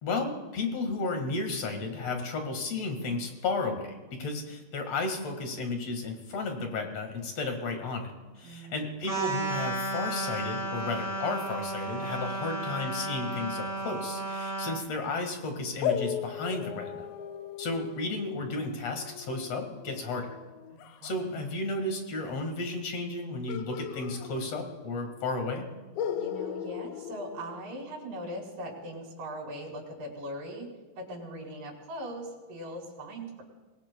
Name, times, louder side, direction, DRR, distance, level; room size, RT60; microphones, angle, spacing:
voice 1, 0.0-8.1 8.4-17.0 17.6-20.3 21.0-25.7, left 3 dB, 50° left, 4 dB, 2.4 m, -33 dB
voice 2, 8.4-8.9 20.7-21.3 26.1-30.7 31.0-33.4, right 1 dB, 90° right, -1 dB, 5.2 m, -40 dB
sound 1, 9.0-14.8, right 1 dB, 5° left, 1.6 m, -33 dB
sound 2, 15.8-21.2 23.5-24.9 25.2-25.3 26.0-28.1, left 9 dB, 80° left, 2.4 m, -37 dB
25.5 x 20.5 x 2.3 m, 1.2 s
omnidirectional pair, 4.5 m